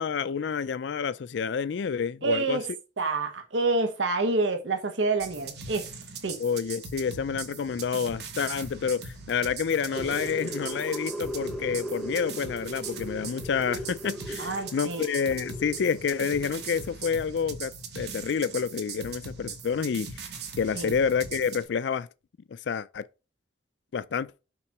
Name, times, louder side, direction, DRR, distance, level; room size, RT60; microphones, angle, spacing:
voice 1, 0.0-2.6 6.4-20.1 20.6-22.1 22.5-23.0 23.9-24.3, left 6 dB, 70° left, 0.4 m, -29 dB
voice 2, 2.2-2.6 3.0-5.9 6.2-6.4 14.4-15.1 20.7-20.9, right 3 dB, 80° right, 1.1 m, -27 dB
sound 1, 5.2-21.6, right 4 dB, 60° right, 1.3 m, -40 dB
sound 2, 9.7-17.0, equal, ahead, 0.8 m, -38 dB
5.9 x 3.9 x 4.6 m
head